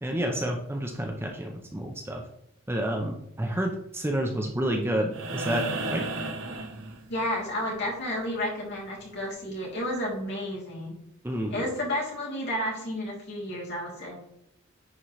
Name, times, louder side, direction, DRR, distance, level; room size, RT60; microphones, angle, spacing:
voice 1, 0.0-2.2 2.7-6.1 11.2-11.7, right 1 dB, 10° right, 1 dB, 0.7 m, -30 dB
sound 1, 5.1-7.4 9.3-9.4, right 2 dB, 60° right, 0.9 m, -33 dB
voice 2, 7.1-10.9 11.5-14.2, left 1 dB, 55° left, -4 dB, 2.9 m, -31 dB
10.0 x 4.3 x 3.2 m, 0.77 s
head